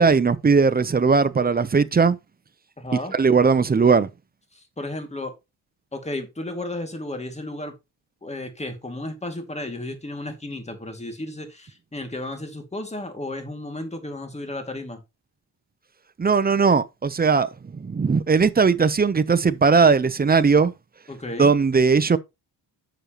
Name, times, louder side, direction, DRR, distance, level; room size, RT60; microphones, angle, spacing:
voice 1, 0.0-2.2 3.1-4.1 16.2-17.5 17.7-20.7 21.4-22.2, right 5 dB, 20° right, 0.7 m, -18 dB
voice 2, 2.8-3.1 4.5-5.3 5.9-7.7 8.2-15.0 21.1-21.5, left 1 dB, 15° left, 2.2 m, -33 dB
10.0 x 6.4 x 3.0 m
cardioid pair, 115°, 43 cm